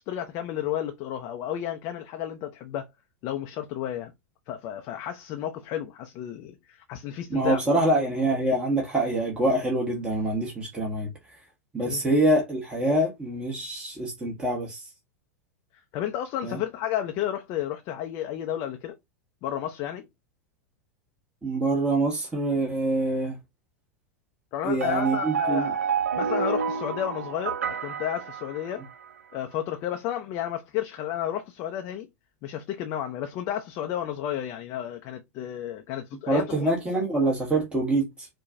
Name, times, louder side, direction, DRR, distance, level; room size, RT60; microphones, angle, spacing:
voice 1, 0.0-2.9 3.2-4.1 4.5-7.8 11.9-12.0 15.9-18.9 19.4-20.0 24.5-25.8 26.2-28.8 29.3-32.1 32.4-36.7, left 11 dB, 40° left, 0.5 m, -32 dB
voice 2, 7.3-11.1 11.7-14.8 16.4-16.6 21.4-23.3 24.6-25.7 36.3-38.3, right 1 dB, 15° right, 1.1 m, -25 dB
sound 1, 24.8-29.1, right 6 dB, 75° right, 0.4 m, -29 dB
4.5 x 2.2 x 2.5 m
figure-of-eight pair, 90°, 8 cm